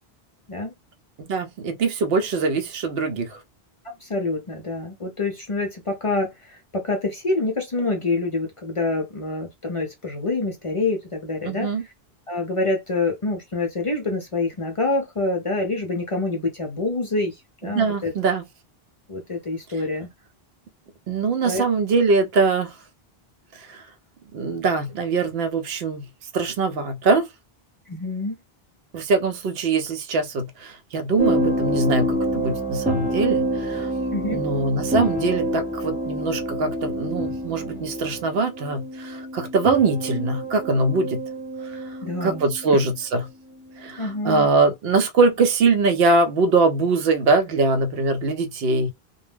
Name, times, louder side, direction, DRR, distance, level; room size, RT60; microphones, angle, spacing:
voice 1, 1.2-3.4 11.4-11.8 17.6-18.4 21.1-22.7 23.6-23.8 24.3-26.1 26.3-27.3 28.9-33.9 34.3-41.2 41.7-41.8 42.2-43.3 43.8-48.9, right 3 dB, 75° right, 0.8 m, -22 dB
voice 2, 4.0-11.7 12.3-17.4 17.6-18.1 19.1-20.1 21.4-21.6 27.9-28.4 34.1-34.4 42.0-42.4 42.7-42.8 44.0-44.5, left 2 dB, 40° left, 0.5 m, -26 dB
sound 1, 31.2-42.9 43.8-44.1, right 1 dB, 10° right, 0.4 m, -27 dB
2.2 x 2.1 x 3.2 m
omnidirectional pair, 1.0 m